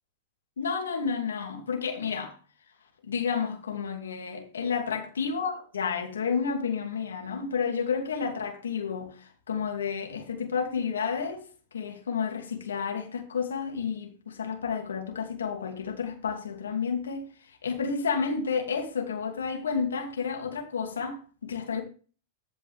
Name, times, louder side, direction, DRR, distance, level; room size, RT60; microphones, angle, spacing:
voice 1, 0.6-2.3 3.0-11.4 11.7-21.8, left 6 dB, 90° left, 2.7 m, -31 dB
14.5 x 5.4 x 3.5 m
hypercardioid pair, 115°, 0 cm